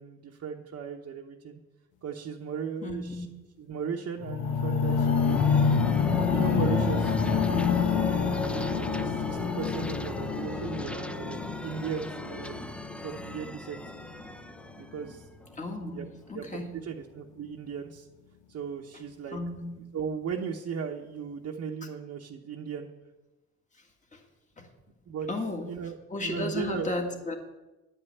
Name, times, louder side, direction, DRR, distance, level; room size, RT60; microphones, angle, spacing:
voice 1, 0.0-1.6 2.0-3.3 3.6-5.7 6.3-12.6 13.0-13.8 14.7-15.3 15.9-16.1 16.3-18.1 18.5-19.4 19.9-22.9 25.1-25.3 25.7-26.0 26.2-26.9, right 6 dB, 55° right, 0 dB, 1.0 m, -37 dB
voice 2, 2.8-3.3 15.5-16.0 16.3-16.7 19.3-19.8 24.1-24.2 24.6-24.7 25.3-25.8 26.1-27.4, left 2 dB, 25° left, 3 dB, 2.0 m, -34 dB
sound 1, 4.2-14.3 15.0-15.1, left 6 dB, 80° left, 1.0 m, -27 dB
sound 2, 4.4-15.9, equal, 5° left, 0.5 m, -38 dB
10.0 x 5.5 x 8.3 m, 1.1 s
cardioid pair, 90°, 30 cm